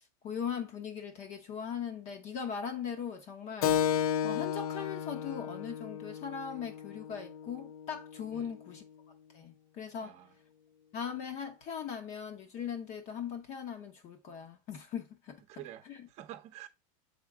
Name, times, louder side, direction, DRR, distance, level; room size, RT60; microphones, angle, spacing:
voice 1, 0.0-3.8 4.2-8.8 9.3-10.2 10.9-15.4 15.9-16.0, left 7 dB, 40° left, 1.0 m, -39 dB
Keyboard (musical), 3.6-8.7, left 9 dB, 80° left, 0.5 m, -34 dB
voice 2, 10.0-10.4 15.5-16.7, right 12 dB, 40° right, 0.8 m, -48 dB
7.1 x 3.7 x 3.6 m
supercardioid pair, 145°, 18 cm